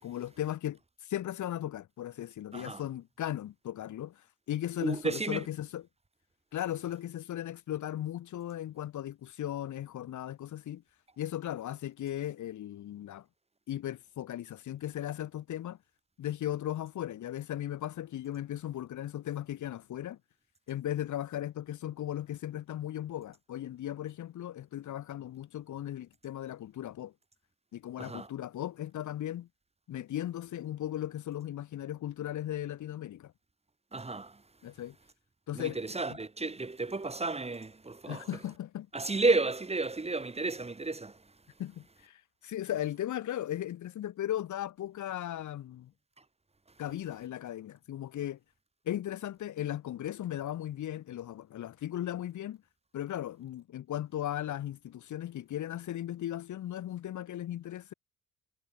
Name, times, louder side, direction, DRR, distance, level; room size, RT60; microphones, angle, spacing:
voice 1, 0.0-5.9 6.5-10.8 11.2-13.2 13.7-15.8 16.2-20.2 20.7-27.1 27.7-29.5 29.9-33.3 34.6-34.9 35.5-35.8 36.1-36.2 38.1-38.9 41.6-45.9 46.8-48.4 48.8-52.6 52.9-57.9, left 12 dB, 75° left, 4.8 m, -37 dB
voice 2, 4.8-5.4 28.0-28.3 33.9-34.3 35.5-38.2 38.9-41.1, right 3 dB, 20° right, 3.2 m, -32 dB
cardioid pair, 90°, 30 cm